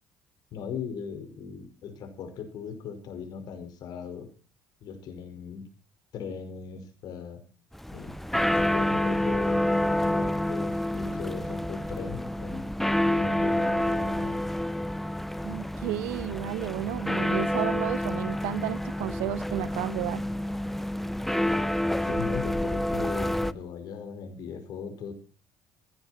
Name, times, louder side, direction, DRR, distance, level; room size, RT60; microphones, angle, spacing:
voice 1, 0.5-4.3 4.8-5.7 6.1-7.4 7.9-8.2 8.5-12.6 13.1-14.4 22.0-25.1, left 6 dB, 65° left, 5.2 m, -38 dB
sound 1, 7.7-23.5, left 1 dB, 5° left, 0.9 m, -28 dB
voice 2, 15.4-20.2, right 20 dB, 80° right, 0.7 m, -32 dB
16.5 x 15.0 x 4.3 m
supercardioid pair, 75°, 7 cm